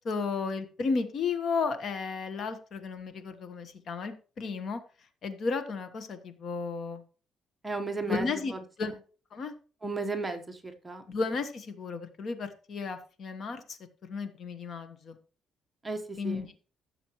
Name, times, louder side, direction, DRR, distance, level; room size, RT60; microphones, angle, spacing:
voice 1, 0.0-4.8 5.2-7.0 8.1-8.5 8.8-8.9 9.3-9.5 11.1-13.8 14.1-15.2 16.2-16.5, left 4 dB, 45° left, 9 dB, 1.2 m, -33 dB
voice 2, 7.6-8.3 9.8-10.6 10.8-11.0 15.8-16.5, right 3 dB, 10° right, 5 dB, 1.1 m, -34 dB
15.5 x 6.9 x 3.1 m, 0.38 s
cardioid pair, 155°, 0 cm